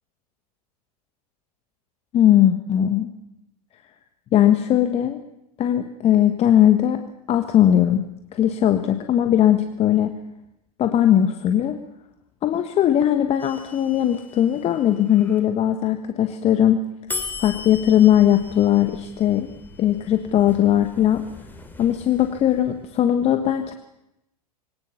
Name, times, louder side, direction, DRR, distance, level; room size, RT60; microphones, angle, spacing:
voice 1, 2.1-3.1 4.3-5.2 5.6-8.0 8.3-10.1 10.8-11.8 12.4-16.9 17.4-19.5 19.8-21.3 21.8-23.7, left 11 dB, 30° left, 8 dB, 1.5 m, -19 dB
sound 1, 13.4-15.4 17.1-23.1, left 3 dB, 10° left, 3.3 m, -39 dB
23.0 x 18.5 x 7.0 m, 0.84 s
figure-of-eight pair, 85°, 20 cm